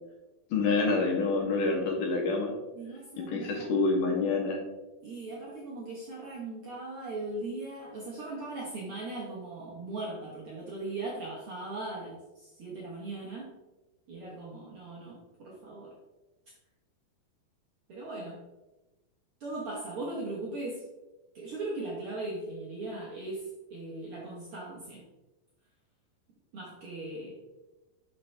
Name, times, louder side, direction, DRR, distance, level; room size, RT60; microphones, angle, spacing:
voice 1, 0.5-2.5 3.2-4.6, left 3 dB, 70° left, 1 dB, 2.4 m, -27 dB
voice 2, 2.7-3.7 5.0-13.5 14.1-16.0 17.9-18.4 19.4-20.8 21.3-25.0 26.5-27.4, right 2 dB, 80° right, -4 dB, 1.2 m, -39 dB
7.0 x 5.9 x 3.3 m, 1.1 s
omnidirectional pair, 4.3 m